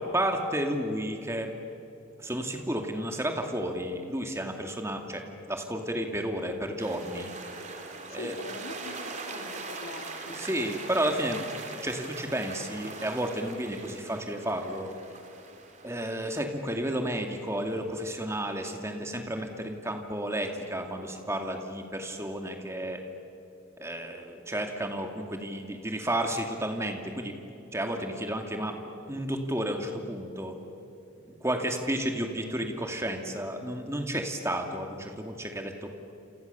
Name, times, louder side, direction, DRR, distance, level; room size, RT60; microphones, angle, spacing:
voice 1, 0.0-1.5 2.2-7.3 8.1-8.4 10.3-11.4 11.8-14.9 15.8-23.0 23.8-27.3 27.7-28.7 29.1-30.6 31.4-35.9, right 1 dB, 15° right, 4 dB, 2.3 m, -32 dB
sound 1, 6.8-18.2, right 3 dB, 35° right, 2.8 m, -42 dB
voice 2, 8.2-10.4, left 2 dB, 80° left, 3 dB, 2.5 m, -42 dB
29.0 x 28.5 x 7.0 m, 3.0 s
head